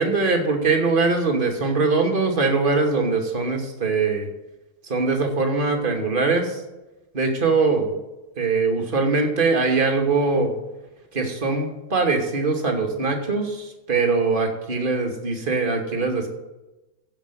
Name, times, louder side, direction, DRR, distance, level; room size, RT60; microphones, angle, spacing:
voice 1, 0.0-4.3 4.9-6.6 7.1-8.0 8.4-10.5 11.1-16.3, right 4 dB, 50° right, 3 dB, 2.6 m, -22 dB
15.0 x 5.3 x 8.1 m, 1.0 s
figure-of-eight pair, 90°, 0 cm